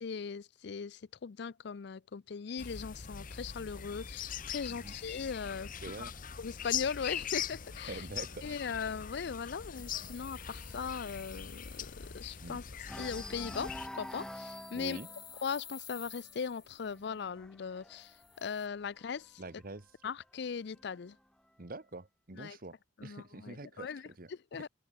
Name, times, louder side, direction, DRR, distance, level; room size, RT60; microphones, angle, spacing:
voice 1, 0.0-5.7 6.0-6.1 6.4-8.0 8.4-12.6 13.0-15.0 15.4-18.1 18.4-19.3 20.0-21.1 22.4-22.6 23.0-24.0 24.5-24.7, left 6 dB, 65° left, 0.5 m, -39 dB
sound 1, 2.6-13.9, left 8 dB, 50° left, 1.0 m, -42 dB
sound 2, 4.4-7.7 8.1-8.4 8.7-8.8 9.2-12.4 12.8-19.4 20.2-21.2, left 1 dB, 5° left, 1.5 m, -50 dB
voice 2, 4.7-5.0 5.8-6.2 7.9-8.6 12.4-12.6 14.7-15.1 19.4-19.9 21.6-24.7, right 2 dB, 50° right, 1.5 m, -46 dB
sound 3, 9.7-12.0 13.4-17.0 18.0-18.7, left 7 dB, 20° left, 5.0 m, -53 dB
head